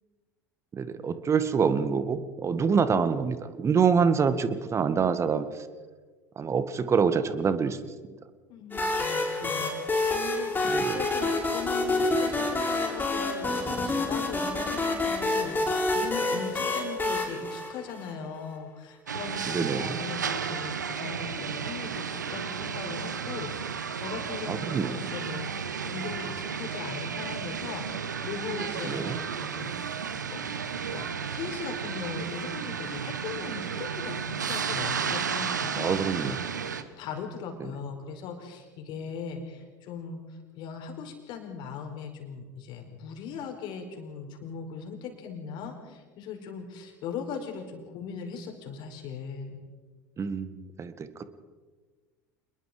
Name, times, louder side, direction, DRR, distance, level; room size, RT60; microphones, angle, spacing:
voice 1, 0.7-5.7 6.4-7.8 10.6-11.0 19.5-20.0 24.5-25.0 28.9-29.2 35.7-36.4 50.2-51.2, right 6 dB, 30° right, 11 dB, 1.9 m, -26 dB
voice 2, 8.5-9.8 10.1-29.8 30.2-30.5 30.9-31.1 31.3-36.4 36.7-49.6, left 6 dB, 55° left, 4 dB, 4.8 m, -39 dB
sound 1, 8.7-18.4, left 2 dB, 20° left, 7.4 m, -28 dB
sound 2, 19.1-36.8, right 7 dB, 85° right, 1.2 m, -33 dB
27.0 x 21.5 x 5.1 m, 1.4 s
hypercardioid pair, 75°, 9 cm